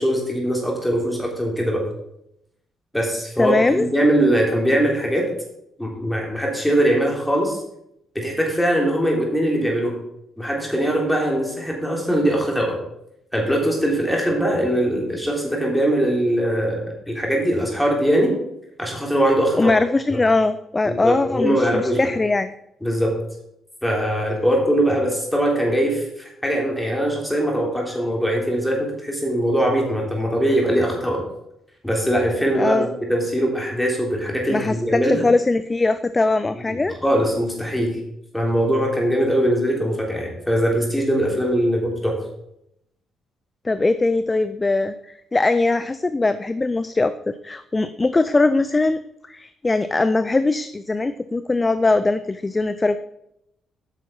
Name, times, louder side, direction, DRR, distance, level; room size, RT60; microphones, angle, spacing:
voice 1, 0.0-1.8 2.9-5.2 5.8-7.6 8.1-9.9 10.4-12.8 13.3-18.3 18.8-19.7 20.8-22.0 22.8-23.1 23.8-31.2 31.8-35.3 36.7-38.0 38.3-42.1, equal, 5° left, -1 dB, 3.2 m, -21 dB
voice 2, 3.4-3.9 19.6-22.5 32.6-32.9 34.5-36.9 43.6-49.0 49.3-53.0, left 3 dB, 20° left, 12 dB, 0.4 m, -21 dB
9.0 x 6.2 x 5.5 m, 0.80 s
cardioid pair, 90°, 0 cm